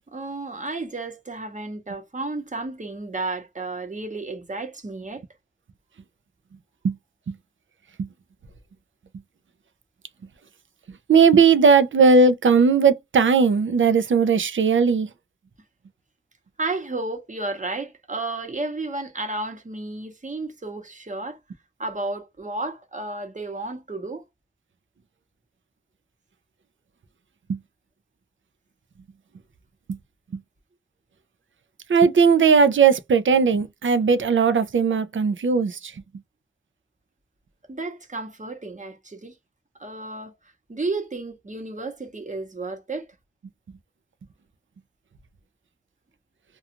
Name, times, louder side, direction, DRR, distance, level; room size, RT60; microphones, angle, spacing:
voice 1, 0.1-5.2 16.6-21.4 21.8-24.2 37.7-39.3 39.8-40.4 40.7-43.1, right 2 dB, 35° right, 0.9 m, -32 dB
voice 2, 11.1-15.1 27.5-27.6 29.9-30.0 31.9-35.9, right 5 dB, 70° right, 0.5 m, -18 dB
2.4 x 2.3 x 2.8 m
wide cardioid pair, 55°, 21 cm